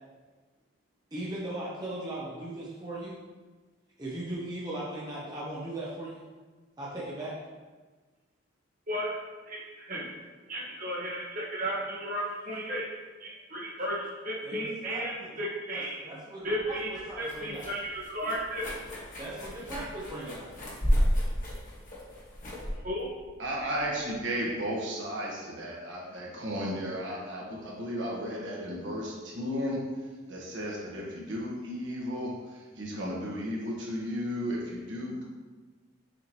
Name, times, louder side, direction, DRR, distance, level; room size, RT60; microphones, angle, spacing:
voice 1, 1.1-3.2 4.0-6.2 6.8-7.4 14.4-15.4 15.7-17.6 19.2-20.5, right 1 dB, 20° right, -6 dB, 0.9 m, -38 dB
voice 2, 9.5-10.1 10.5-12.9 13.2-16.1 16.4-18.6 22.8-23.1, equal, 40° right, -4 dB, 1.4 m, -34 dB
sound 1, 16.5-24.2, equal, 40° left, 1.6 m, -32 dB
voice 3, 23.4-29.8 30.3-32.3 32.8-35.2, equal, 65° right, -4 dB, 1.4 m, -34 dB
6.6 x 4.9 x 3.0 m, 1.3 s
head